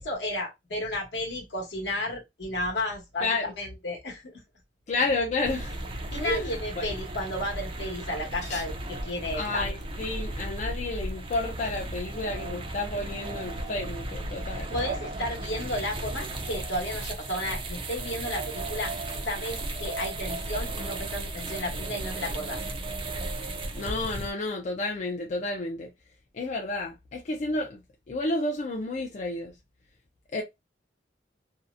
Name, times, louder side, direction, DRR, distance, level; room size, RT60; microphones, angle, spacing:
voice 1, 0.0-4.4 6.1-9.6 14.7-18.9 19.2-22.6, left 1 dB, 70° left, 1.0 m, -33 dB
voice 2, 4.9-5.8 6.2-6.5 6.8-6.9 8.4-8.6 9.4-14.7 23.7-25.9 26.3-27.8 28.1-29.5 30.3-30.4, left 2 dB, 40° left, 0.4 m, -31 dB
Regents Park - Water Fountain, 5.4-24.3, right 2 dB, 30° right, 0.4 m, -35 dB
2.7 x 2.0 x 2.4 m
head